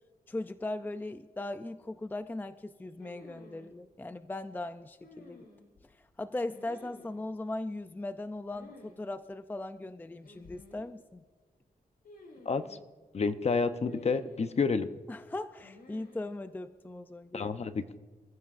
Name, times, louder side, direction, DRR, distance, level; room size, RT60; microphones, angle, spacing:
voice 1, 0.3-5.4 6.2-11.2 15.1-17.5, left 2 dB, 10° left, 10 dB, 0.4 m, -39 dB
sound 1, 3.0-3.7 5.0-5.8 6.5-7.2 8.5-9.0 9.2-9.3 10.2-10.9 12.0-12.8 13.8-14.6 15.6-16.4, left 2 dB, 80° left, 4.0 m, -53 dB
voice 2, 13.1-14.9 17.3-17.7, left 4 dB, 45° left, 10 dB, 0.8 m, -29 dB
27.0 x 14.5 x 2.6 m, 1.5 s
wide cardioid pair, 145°, 16 cm